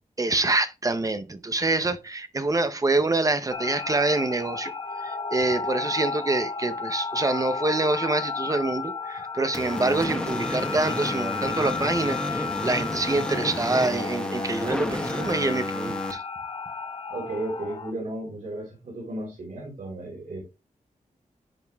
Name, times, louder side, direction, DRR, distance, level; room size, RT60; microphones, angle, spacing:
voice 1, 0.2-4.7 5.0-16.2, right 2 dB, 25° right, 0.6 m, -26 dB
sound 1, 3.5-17.9, left 4 dB, 35° left, 0.8 m, -33 dB
sound 2, 9.5-16.1, left 1 dB, 5° left, 1.1 m, -31 dB
voice 2, 17.1-20.4, right 1 dB, 80° right, 3.6 m, -34 dB
10.5 x 5.2 x 2.3 m
wide cardioid pair, 130°, 14 cm